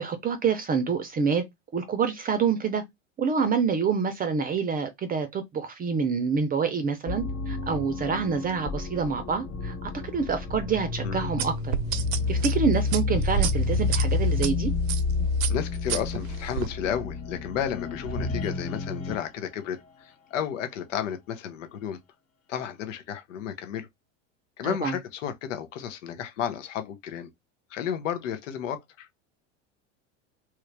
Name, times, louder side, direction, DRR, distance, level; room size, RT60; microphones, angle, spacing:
voice 1, 0.0-1.4 1.7-2.8 3.2-11.7 12.3-14.7 24.6-25.0, right 5 dB, 25° right, 0.5 m, -27 dB
sound 1, 7.0-19.3, left 3 dB, 45° left, 1.1 m, -29 dB
sound 2, 11.4-14.5 14.9-15.1 15.4-16.7, right 10 dB, 65° right, 0.6 m, -30 dB
voice 2, 15.5-22.0 22.5-23.9 24.6-27.3 27.7-29.1, left 9 dB, 85° left, 0.8 m, -32 dB
3.1 x 2.4 x 3.2 m
supercardioid pair, 105°, 36 cm